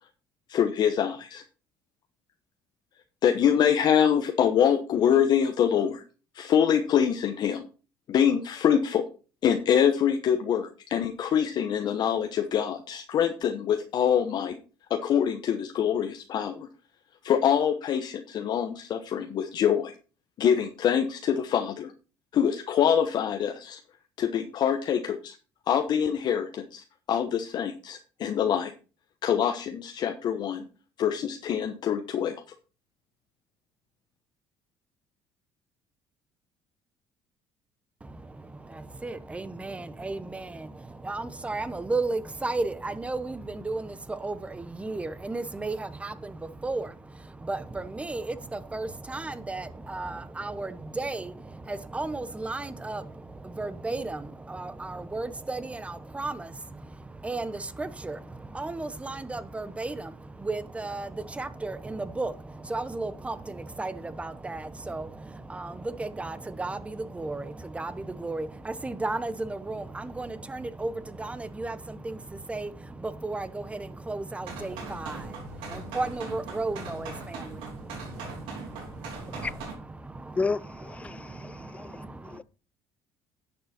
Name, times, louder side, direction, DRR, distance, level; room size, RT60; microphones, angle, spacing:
voice 1, 0.5-1.4 3.2-6.0 6.3-7.6 8.1-9.0 9.4-14.6 14.9-16.7 17.2-19.9 20.4-21.9 22.3-23.8 24.2-25.4 25.7-28.7 29.2-30.6 31.0-32.4, left 8 dB, 55° left, 1.0 m, -25 dB
voice 2, 38.0-82.4, right 2 dB, 15° right, 1.0 m, -35 dB
sound 1, 74.4-79.7, right 3 dB, 80° right, 3.3 m, -40 dB
voice 3, 80.4-82.4, left 4 dB, 15° left, 0.3 m, -33 dB
10.5 x 6.7 x 4.3 m
cardioid pair, 100°, 9 cm